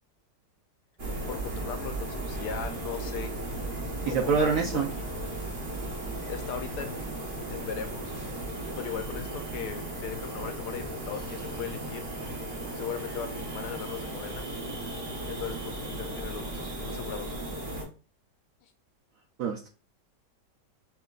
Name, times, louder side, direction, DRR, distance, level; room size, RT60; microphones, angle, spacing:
sound 1, 1.0-17.8, right 1 dB, 35° right, 1.2 m, -36 dB
voice 1, 1.3-3.3 4.1-5.1 6.3-7.2 7.5-8.2 8.8-12.0 12.7-14.4 15.3-17.3 18.6-18.7, left 8 dB, 75° left, 7 dB, 1.1 m, -38 dB
voice 2, 4.1-4.9 19.4-19.7, right 5 dB, 70° right, 2 dB, 0.8 m, -26 dB
5.7 x 2.9 x 2.4 m, 0.36 s
omnidirectional pair, 1.9 m